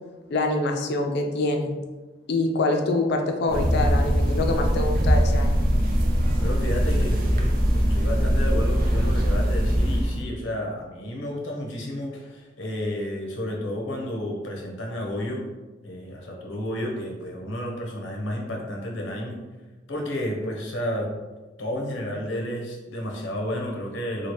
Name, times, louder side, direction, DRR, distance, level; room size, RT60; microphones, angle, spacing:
voice 1, 0.3-1.7 2.3-5.6, left 2 dB, 60° left, 3 dB, 0.4 m, -25 dB
sound 1, 3.5-10.2, equal, 50° right, 0.4 m, -21 dB
voice 2, 6.4-15.5 15.8-19.4 19.9-21.1 21.6-24.3, left 1 dB, 85° left, 0 dB, 0.7 m, -31 dB
3.1 x 2.4 x 2.9 m, 1.2 s
head